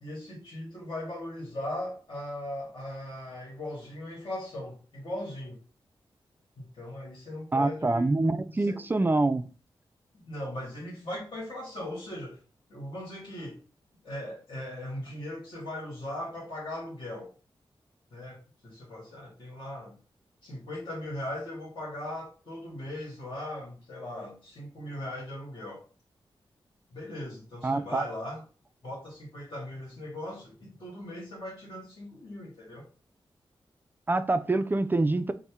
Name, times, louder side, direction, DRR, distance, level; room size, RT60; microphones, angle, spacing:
voice 1, 0.0-5.6 6.6-8.2 8.5-8.8 10.3-12.4 12.7-13.6 14.0-17.3 18.1-20.0 20.4-25.8 26.9-28.4 28.8-32.9, left 1 dB, 50° left, -4 dB, 1.8 m, -39 dB
voice 2, 7.5-9.4 27.6-28.0 34.1-35.3, right 2 dB, 20° right, 11 dB, 0.3 m, -25 dB
4.0 x 2.1 x 3.5 m, 0.35 s
wide cardioid pair, 90°, 9 cm